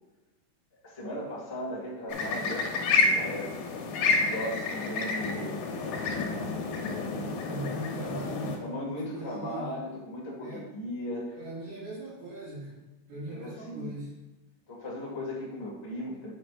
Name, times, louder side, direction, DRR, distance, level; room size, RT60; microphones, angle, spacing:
voice 1, 0.8-3.5 4.0-6.0 8.6-11.7 13.3-14.0 14.7-16.3, left 1 dB, 30° left, -5 dB, 0.4 m, -38 dB
sound 1, 2.1-8.6, left 4 dB, 70° left, 2.5 m, -29 dB
voice 2, 7.5-9.8 10.4-10.7 11.4-12.8 13.1-14.1, right 1 dB, 70° right, -11 dB, 4.0 m, -39 dB
8.8 x 7.7 x 2.6 m, 1.1 s
omnidirectional pair, 4.8 m